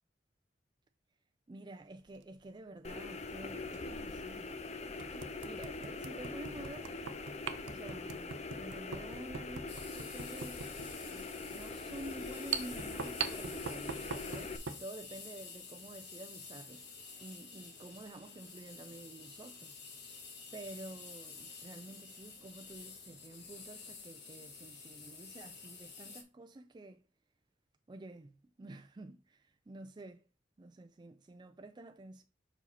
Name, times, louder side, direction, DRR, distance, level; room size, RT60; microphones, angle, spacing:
voice 1, 1.5-6.9 7.6-16.8 17.2-19.8 20.5-27.0 27.9-30.3 30.6-32.2, right 2 dB, 25° right, 0.4 m, -50 dB
sound 1, 2.0-2.2 3.7-3.8 4.4-4.5 5.0-14.9, right 6 dB, 85° right, 0.6 m, -42 dB
sound 2, 2.8-14.6, left 3 dB, 35° left, 0.6 m, -43 dB
sound 3, 9.7-26.2, left 5 dB, 65° left, 1.4 m, -50 dB
5.5 x 4.8 x 4.2 m
head